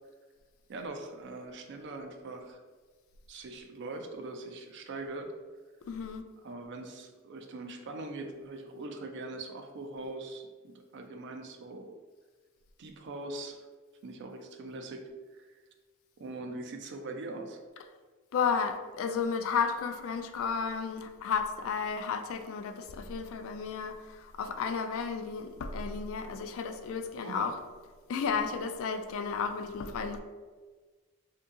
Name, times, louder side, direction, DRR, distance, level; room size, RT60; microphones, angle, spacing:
voice 1, 0.7-2.6 3.3-5.3 6.4-11.9 12.8-13.7 14.0-15.5 16.2-17.6 27.2-27.5, right 2 dB, 55° right, 5 dB, 0.4 m, -42 dB
voice 2, 5.9-6.2 18.3-27.5 28.1-30.2, left 6 dB, 65° left, 8 dB, 0.3 m, -33 dB
2.7 x 2.6 x 3.6 m, 1.4 s
head